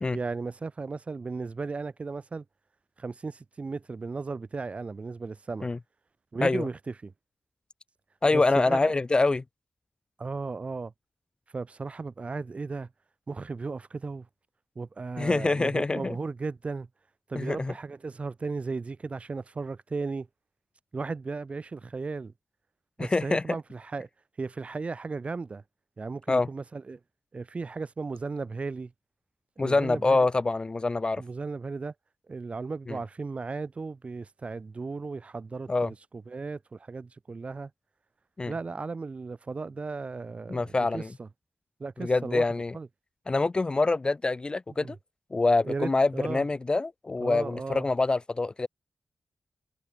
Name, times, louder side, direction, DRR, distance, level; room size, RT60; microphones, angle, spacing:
voice 1, 0.1-2.4 3.0-5.7 6.3-7.1 8.3-8.9 10.2-10.9 11.5-12.9 13.3-14.3 14.7-16.9 17.3-20.3 20.9-22.3 23.0-24.1 24.4-25.6 26.0-27.0 27.3-28.9 29.6-30.3 31.2-31.9 32.3-37.7 38.5-41.3 41.8-42.5 42.7-42.9 44.8-44.9 45.6-46.5 47.2-47.9, right 4 dB, 35° right, 1.3 m, -35 dB
voice 2, 8.2-9.4 15.2-16.2 17.3-17.7 23.0-23.4 26.3-26.5 29.6-31.2 32.9-33.0 35.7-35.9 38.4-38.5 40.5-41.1 42.0-42.8 43.3-45.0 45.3-48.7, left 3 dB, 25° left, 0.5 m, -25 dB
wide cardioid pair, 135°, 4 cm